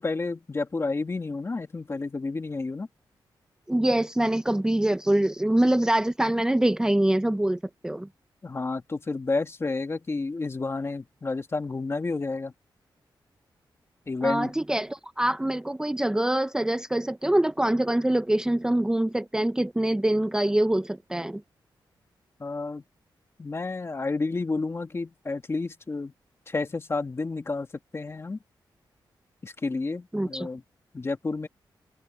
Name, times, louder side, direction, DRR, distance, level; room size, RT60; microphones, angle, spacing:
voice 1, 0.0-2.9 8.4-12.5 14.1-14.5 22.4-22.8 23.4-26.1 26.5-27.7 27.9-28.4 29.4-30.6 30.9-31.5, left 3 dB, 30° left, 2.1 m, -30 dB
voice 2, 3.7-8.1 14.2-21.4 30.1-30.5, right 1 dB, 10° right, 0.6 m, -24 dB
wide cardioid pair, 100°, 8 cm